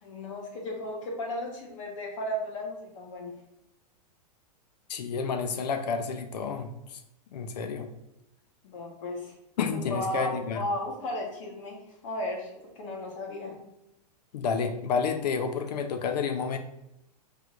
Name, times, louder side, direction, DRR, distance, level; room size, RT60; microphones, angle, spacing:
voice 1, 0.0-3.3 8.6-9.3 9.7-11.8 12.0-13.6, left 1 dB, 50° left, 1 dB, 1.1 m, -35 dB
voice 2, 4.9-7.0 7.3-7.9 9.6-10.6 14.3-16.6, left 5 dB, 90° left, 7 dB, 0.6 m, -30 dB
4.7 x 3.3 x 2.4 m, 0.86 s
supercardioid pair, 165°, 20 cm